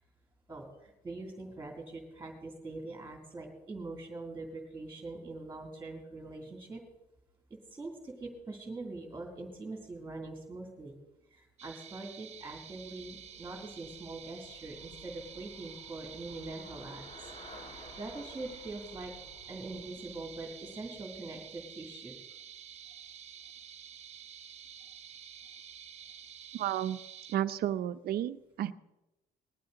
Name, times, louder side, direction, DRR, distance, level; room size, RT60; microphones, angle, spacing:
voice 1, 0.5-6.8 7.5-11.0 11.3-19.1 19.5-22.2, right 2 dB, 15° right, 0 dB, 2.7 m, -43 dB
sound 1, 11.6-27.4, right 8 dB, 40° right, 0.9 m, -49 dB
Traffic noise roadway noise / Bicycle, 12.4-21.5, left 1 dB, 40° left, 3.7 m, -54 dB
voice 2, 26.5-27.0 27.3-28.7, right 11 dB, 65° right, 12 dB, 0.7 m, -32 dB
20.0 x 12.0 x 3.9 m, 0.97 s
cardioid pair, 110°, 17 cm